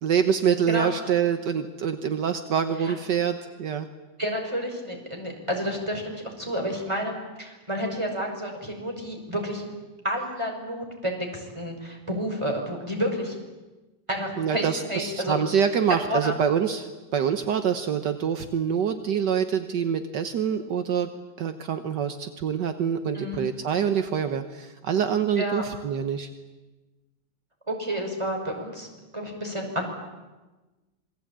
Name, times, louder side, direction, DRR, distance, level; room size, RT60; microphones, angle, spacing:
voice 1, 0.0-3.9 14.4-21.1 21.4-26.3, right 7 dB, 70° right, 8 dB, 1.7 m, -25 dB
voice 2, 4.2-9.6 10.0-13.3 14.1-15.4 16.1-16.3 23.1-23.5 25.4-25.6 27.7-28.9 29.1-29.9, equal, 15° right, 2 dB, 5.8 m, -30 dB
27.5 x 22.0 x 8.8 m, 1.2 s
omnidirectional pair, 1.9 m